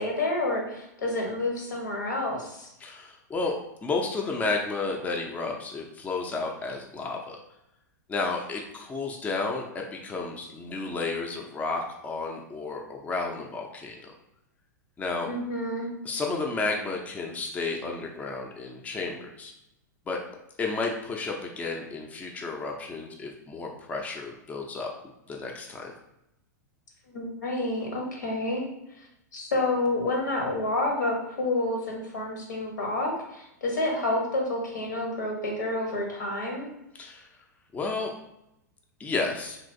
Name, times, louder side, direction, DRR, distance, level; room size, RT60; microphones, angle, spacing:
voice 1, 0.0-2.7 15.2-15.9 27.1-28.7 29.3-36.7, left 2 dB, 75° left, 0 dB, 0.9 m, -29 dB
voice 2, 2.8-3.5 3.8-7.4 8.1-14.1 15.0-15.3 16.0-19.5 20.1-20.2 20.6-24.9 25.3-25.9 36.9-37.3 37.7-38.1 39.0-39.6, left 3 dB, 15° left, 1 dB, 0.4 m, -32 dB
3.0 x 2.6 x 2.5 m, 0.84 s
figure-of-eight pair, 100°, 10 cm